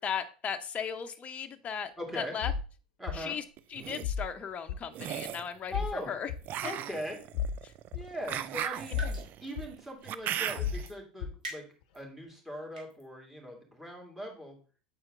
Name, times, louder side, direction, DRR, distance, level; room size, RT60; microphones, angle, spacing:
voice 1, 0.0-2.5 3.1-3.4 3.7-5.7 6.1-6.3 7.6-7.7, left 7 dB, 30° left, 7 dB, 0.7 m, -36 dB
voice 2, 2.0-2.4 3.0-3.4 5.7-6.1 6.6-7.2 7.9-9.1 9.4-11.6 11.9-14.6, equal, 5° right, 0 dB, 2.6 m, -40 dB
sound 1, 2.4-2.7 3.1-3.2 4.0-4.3 4.7-4.8 5.7-5.9 6.3-6.4 7.3-7.6 7.9-8.0 8.9-9.2 9.6-9.7 10.6-10.8 11.2-11.3, left 7 dB, 70° left, 0.7 m, -32 dB
sound 2, 3.6-4.0 4.9-5.5 6.4-10.9, right 11 dB, 45° right, 0.5 m, -37 dB
sound 3, 8.7-9.4 9.6-9.7 10.7-10.9 11.4-12.0 12.5-13.0, right 1 dB, 90° right, 2.4 m, -42 dB
7.6 x 4.4 x 3.8 m, 0.37 s
hypercardioid pair, 90°, 4 cm